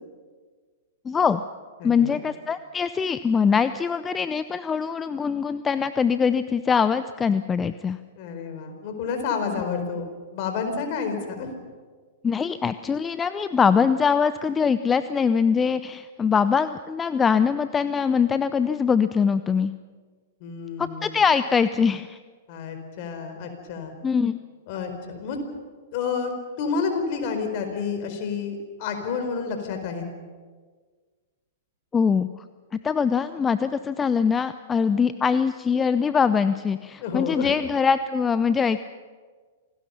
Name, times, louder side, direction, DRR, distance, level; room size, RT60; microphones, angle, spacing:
voice 1, 1.1-1.4 1.8-8.0 12.2-19.7 20.8-22.2 24.0-24.4 31.9-32.3 32.8-38.8, left 6 dB, 15° left, 13 dB, 0.6 m, -22 dB
voice 2, 1.8-2.2 8.2-10.0 10.3-11.5 20.4-21.2 22.5-23.9 24.7-25.4 25.9-26.3 26.6-30.0 37.0-37.5, left 5 dB, 50° left, 6 dB, 4.5 m, -29 dB
27.0 x 18.5 x 5.7 m, 1.5 s
hypercardioid pair, 110°, 0 cm